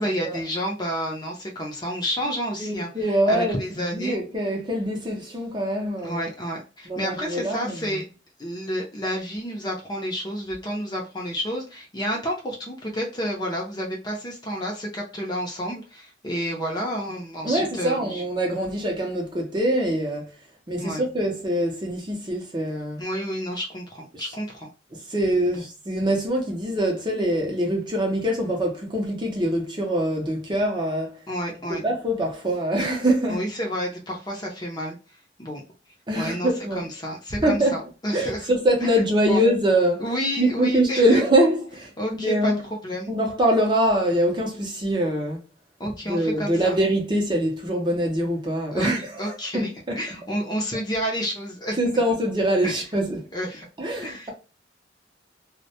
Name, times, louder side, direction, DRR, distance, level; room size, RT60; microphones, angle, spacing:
voice 1, 0.0-4.2 6.0-8.0 8.4-18.2 20.8-21.0 23.0-24.7 25.4-25.6 31.3-31.8 33.3-35.0 35.4-35.6 36.1-38.5 38.8-38.9 39.3-39.4 40.0-41.2 42.0-43.1 45.8-46.6 48.7-49.7 50.0-51.8 52.6-52.8 53.3-53.7 54.0-54.3, equal, 20° left, 0.5 m, -30 dB
voice 2, 2.6-3.6 3.9-6.2 6.9-8.0 17.4-20.3 20.7-23.0 24.1-24.2 24.9-31.2 31.7-33.4 36.1-36.9 37.4-37.8 38.1-40.0 40.4-42.6 43.1-45.4 46.1-50.0 51.8-53.3 53.8-54.3, right 1 dB, 25° right, 0.5 m, -24 dB
2.1 x 2.1 x 2.7 m
head